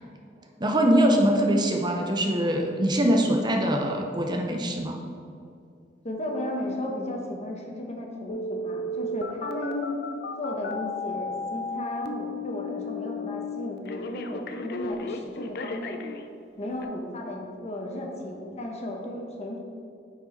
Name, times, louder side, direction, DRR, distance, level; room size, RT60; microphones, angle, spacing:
voice 1, 0.6-5.0, equal, 25° right, 2 dB, 0.6 m, -23 dB
voice 2, 6.0-10.0 10.4-16.0 16.6-19.6, left 1 dB, 35° left, 1 dB, 1.1 m, -34 dB
Telephone, 8.3-16.3 16.8-16.9, left 2 dB, 60° left, 0.5 m, -34 dB
9.0 x 4.7 x 4.3 m, 2.5 s
head